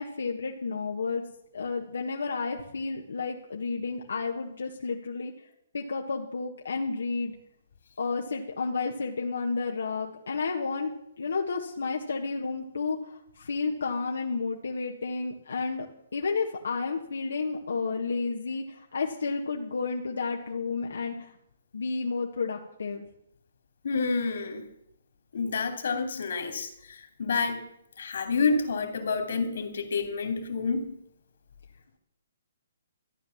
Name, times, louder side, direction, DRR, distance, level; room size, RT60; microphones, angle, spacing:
voice 1, 0.0-5.3 5.7-7.3 8.0-10.9 11.2-15.9 16.1-21.3 21.7-23.0, left 4 dB, 90° left, 1 dB, 1.7 m, -31 dB
voice 2, 23.8-24.6 25.3-27.6 28.0-31.0, left 4 dB, 70° left, 6 dB, 2.9 m, -29 dB
14.0 x 9.3 x 7.2 m, 0.79 s
hypercardioid pair, 160°, 0 cm